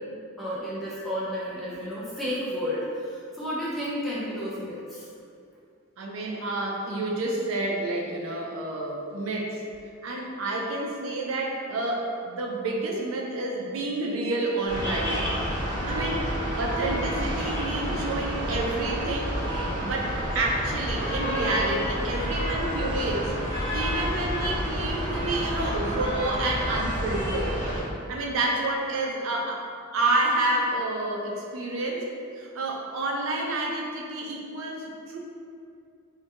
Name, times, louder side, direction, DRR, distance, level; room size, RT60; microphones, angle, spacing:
voice 1, 0.4-5.1, equal, ahead, -9 dB, 0.3 m, -32 dB
voice 2, 6.0-9.6 10.0-15.2 15.7-16.3 16.6-19.3 19.8-23.3 23.7-27.6 28.1-29.6 29.9-32.0 32.3-35.2, right 2 dB, 70° right, -1 dB, 0.4 m, -29 dB
sound 1, 14.7-27.8, equal, 20° right, 1.1 m, -29 dB
2.2 x 2.1 x 2.8 m, 2.4 s
head